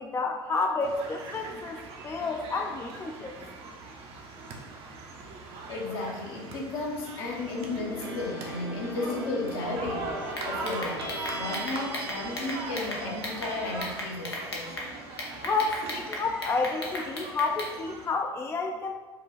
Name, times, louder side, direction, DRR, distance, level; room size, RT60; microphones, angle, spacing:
voice 1, 0.0-3.4 15.4-18.9, left 4 dB, 20° left, 3 dB, 0.4 m, -30 dB
sound 1, 0.8-18.1, right 3 dB, 50° right, 0.7 m, -41 dB
voice 2, 5.7-10.2 10.4-14.7, left 3 dB, 70° left, -1 dB, 1.0 m, -34 dB
sound 2, 7.5-16.4, right 1 dB, 90° right, 0.8 m, -41 dB
sound 3, 10.3-13.5 13.8-14.9 15.2-17.7, left 1 dB, 90° left, 0.7 m, -36 dB
4.8 x 2.3 x 3.9 m, 1.3 s
hypercardioid pair, 70°, 13 cm